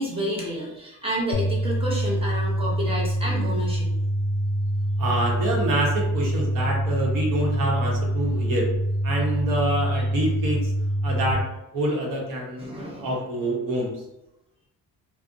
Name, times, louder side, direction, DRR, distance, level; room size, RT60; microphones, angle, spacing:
voice 1, 0.0-3.9 9.9-10.0 12.6-13.2, right 1 dB, 15° right, -4 dB, 0.7 m, -30 dB
sound 1, 1.3-11.3, equal, 50° left, 0.4 m, -25 dB
voice 2, 5.0-8.7 9.0-10.7 11.0-11.4 11.7-13.9, right 1 dB, 70° right, -2 dB, 0.8 m, -26 dB
2.5 x 2.0 x 2.5 m, 0.90 s
cardioid pair, 120°, 35 cm